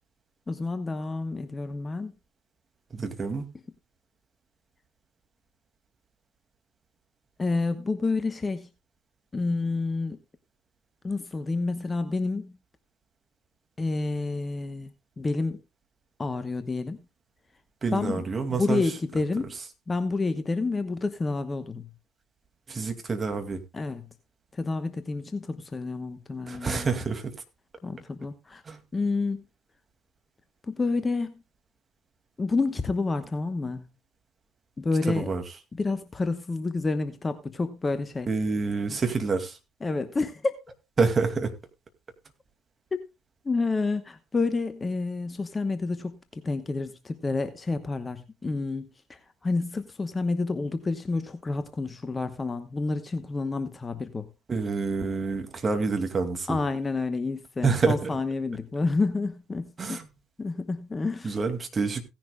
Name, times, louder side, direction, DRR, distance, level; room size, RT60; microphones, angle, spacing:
voice 1, 0.5-2.1 7.4-8.7 9.3-10.2 11.0-12.5 13.8-15.6 16.2-17.0 17.9-19.5 19.9-21.8 23.7-24.0 24.5-27.0 27.8-28.6 28.9-29.4 30.7-31.3 32.4-33.9 34.8-35.3 35.7-38.3 38.9-39.0 39.8-40.7 43.4-54.3 56.5-60.0 60.4-61.4, left 3 dB, 20° left, 1.0 m, -29 dB
voice 2, 2.9-3.5 17.8-18.8 22.7-23.6 26.5-27.3 28.7-28.8 35.1-35.4 38.3-39.6 41.0-41.5 54.5-56.6 57.6-58.1 59.8-60.1 61.2-62.0, right 4 dB, 30° right, 2.2 m, -27 dB
17.0 x 10.5 x 2.3 m
figure-of-eight pair, 60°, 0 cm